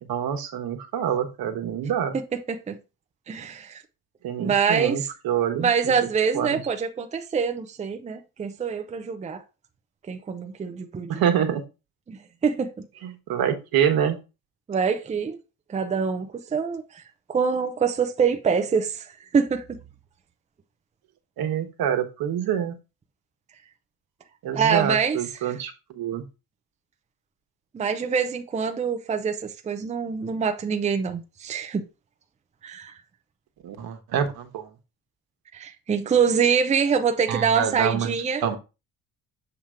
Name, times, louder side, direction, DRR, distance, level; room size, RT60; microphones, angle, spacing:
voice 1, 0.0-2.2 4.2-5.9 6.3-6.6 11.1-11.6 13.0-14.2 21.4-22.8 24.4-26.2 33.6-34.7 37.3-38.1 38.4-38.6, right 9 dB, 75° right, 1.3 m, -26 dB
voice 2, 3.3-3.8 4.4-5.1 5.6-9.4 10.1-11.2 12.1-12.9 14.7-15.4 15.7-17.0 17.3-19.6 24.5-25.5 27.7-31.9 32.6-32.9 35.5-38.4, right 6 dB, 20° right, 0.6 m, -25 dB
7.3 x 3.0 x 5.0 m
cardioid pair, 150°, 36 cm